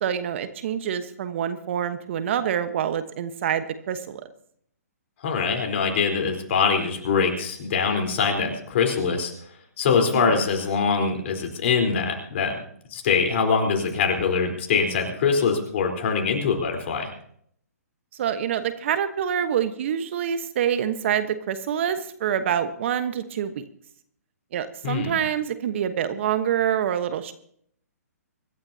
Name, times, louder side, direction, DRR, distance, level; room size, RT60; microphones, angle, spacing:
voice 1, 0.0-4.2 10.1-10.4 18.1-23.6 24.5-27.3, right 9 dB, 45° right, 11 dB, 1.2 m, -26 dB
voice 2, 5.2-9.3 9.8-12.5 12.9-17.1 24.8-25.2, left 5 dB, 45° left, 3 dB, 4.1 m, -23 dB
25.0 x 12.5 x 2.8 m, 0.65 s
hypercardioid pair, 140°, 9 cm